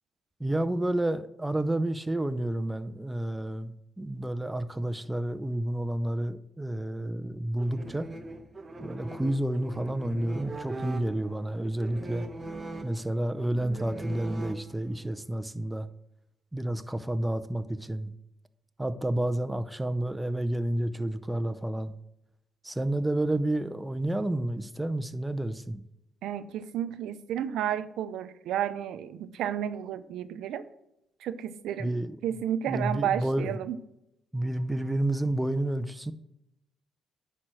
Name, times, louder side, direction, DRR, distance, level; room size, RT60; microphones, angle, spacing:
voice 1, 0.4-8.1 8.8-12.3 12.8-15.9 16.5-18.1 18.8-21.9 22.6-25.8 31.8-32.2 32.7-33.6 34.3-36.1, right 1 dB, 10° right, 10 dB, 0.6 m, -30 dB
sound 1, 7.6-15.1, right 2 dB, 35° right, 0.9 m, -41 dB
voice 2, 26.2-30.7 31.2-31.9 32.2-33.8, right 10 dB, 85° right, 12 dB, 0.5 m, -32 dB
9.8 x 4.5 x 6.2 m, 0.84 s
cardioid pair, 90°, 0 cm